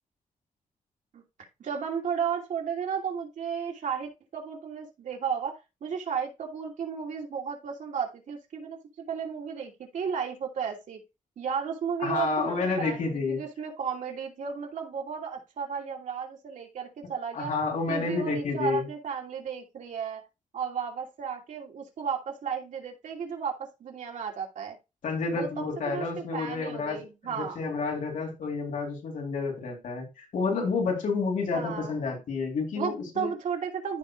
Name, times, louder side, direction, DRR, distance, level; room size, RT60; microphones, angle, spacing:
voice 1, 1.6-8.8 9.1-11.0 11.4-17.5 17.9-20.2 20.5-24.8 25.3-27.6 31.5-31.9 32.7-34.0, right 7 dB, 80° right, 1 dB, 2.8 m, -34 dB
voice 2, 12.0-13.4 17.3-18.9 25.0-33.3, left 4 dB, 85° left, 0 dB, 3.6 m, -30 dB
14.0 x 4.9 x 2.4 m, 0.26 s
wide cardioid pair, 160°, 13 cm